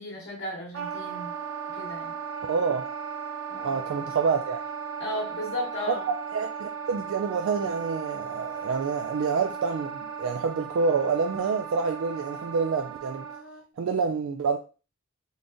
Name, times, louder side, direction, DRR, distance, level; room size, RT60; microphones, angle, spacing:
voice 1, 0.0-1.3 1.7-2.1 3.5-3.7 5.0-6.0, left 1 dB, 60° left, 1.2 m, -35 dB
Wind instrument woodwind instrument, 0.7-13.6, right 6 dB, 85° right, 0.9 m, -36 dB
voice 2, 2.5-2.9 3.6-4.6 6.3-13.3 13.8-14.6, right 5 dB, 65° right, 0.3 m, -27 dB
3.9 x 3.4 x 2.5 m
head